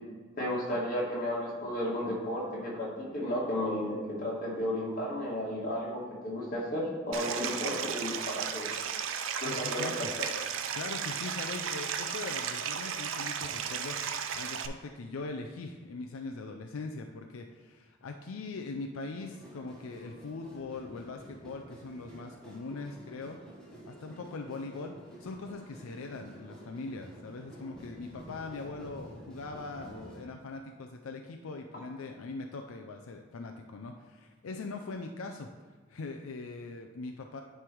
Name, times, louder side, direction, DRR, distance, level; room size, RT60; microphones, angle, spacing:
voice 1, 0.4-8.7 9.4-10.3, left 1 dB, 40° left, -5 dB, 2.2 m, -33 dB
Stream, 7.1-14.7, right 7 dB, 70° right, 0.4 m, -35 dB
voice 2, 9.4-10.1 10.7-23.4 23.8-24.9 25.2-35.5 35.9-37.4, left 3 dB, 85° left, 3 dB, 0.5 m, -41 dB
sound 1, 19.2-30.2, equal, 5° left, 1.0 m, -50 dB
9.6 x 3.3 x 4.5 m, 1.4 s
head